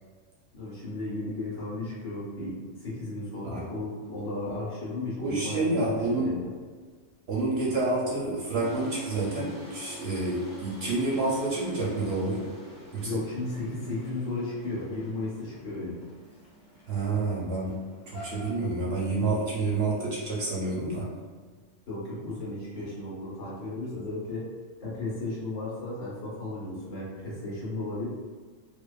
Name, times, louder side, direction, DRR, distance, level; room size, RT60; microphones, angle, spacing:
voice 1, 0.5-6.5 13.0-16.0 21.9-24.5 24.8-28.1, left 2 dB, 70° left, -8 dB, 1.3 m, -34 dB
voice 2, 5.2-6.3 7.3-12.4 12.9-13.2 16.9-17.8 18.1-21.1, right 2 dB, 65° right, -5 dB, 0.7 m, -28 dB
sound 1, 8.6-18.6, right 1 dB, 25° right, 0.3 m, -44 dB
2.7 x 2.1 x 2.2 m, 1.5 s
omnidirectional pair, 1.3 m